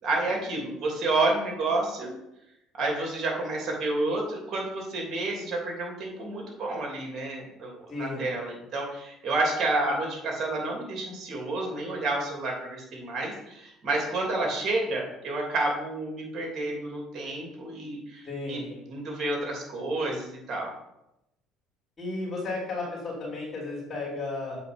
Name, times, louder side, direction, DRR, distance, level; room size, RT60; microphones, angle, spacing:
voice 1, 0.0-2.1 2.8-20.7, right 2 dB, 45° right, 0 dB, 2.9 m, -30 dB
voice 2, 7.9-8.2 18.2-18.8 22.0-24.6, left 3 dB, 35° left, -6 dB, 3.1 m, -34 dB
7.6 x 4.4 x 5.3 m, 0.87 s
supercardioid pair, 85°, 0 cm